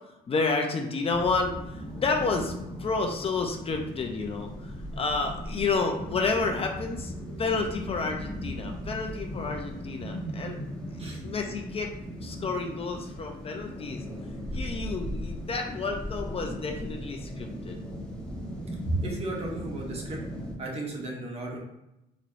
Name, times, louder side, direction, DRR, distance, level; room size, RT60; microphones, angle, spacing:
voice 1, 0.3-2.5 2.8-7.1 7.4-10.6 11.1-11.9 12.2-14.0 14.5-17.8, left 4 dB, 35° left, 3 dB, 0.5 m, -30 dB
sound 1, 1.1-20.6, equal, 5° left, 1.1 m, -38 dB
voice 2, 18.8-20.2 20.6-21.6, right 2 dB, 35° right, -2 dB, 1.2 m, -34 dB
4.4 x 3.1 x 2.6 m, 0.89 s
cardioid pair, 110°, 17 cm